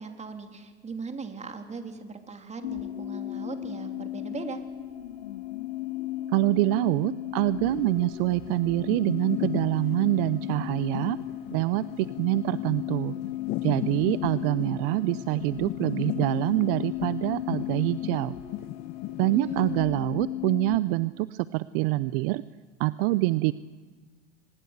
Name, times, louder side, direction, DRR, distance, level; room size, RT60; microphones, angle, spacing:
voice 1, 0.0-4.6 19.3-20.1, right 4 dB, 20° right, 6 dB, 3.3 m, -39 dB
sound 1, 2.6-20.8, left 13 dB, 80° left, 1.8 m, -35 dB
voice 2, 6.3-11.2 11.5-13.1 13.6-18.3 19.2-22.4 22.8-23.5, right 19 dB, 60° right, 17 dB, 0.7 m, -25 dB
sound 2, 7.6-19.8, left 14 dB, 50° left, 1.2 m, -38 dB
25.0 x 21.0 x 8.1 m, 1.4 s
hypercardioid pair, 100°, 33 cm